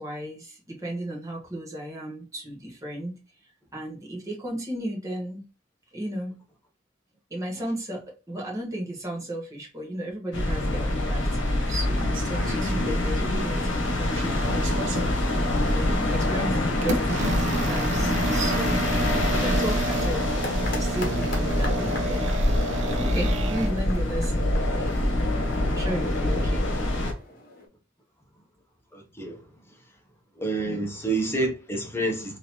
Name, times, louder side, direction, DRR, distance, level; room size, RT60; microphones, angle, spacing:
voice 1, 0.0-3.2 3.7-5.4 5.9-6.4 7.3-14.8 15.7-18.9 19.3-20.4 20.7-22.3 23.0-25.2 25.7-26.7 30.6-30.9, right 1 dB, 15° right, 1.2 m, -34 dB
sound 1, 10.3-27.1, left 1 dB, 65° left, 1.1 m, -25 dB
sound 2, 12.0-13.4 13.8-15.1 15.8-16.0 16.8-23.7, right 2 dB, 65° right, 0.7 m, -31 dB
sound 3, 20.4-27.7, left 2 dB, 45° left, 1.1 m, -41 dB
voice 2, 28.9-29.4 30.4-32.4, right 2 dB, 10° left, 0.8 m, -28 dB
3.9 x 2.8 x 2.9 m
head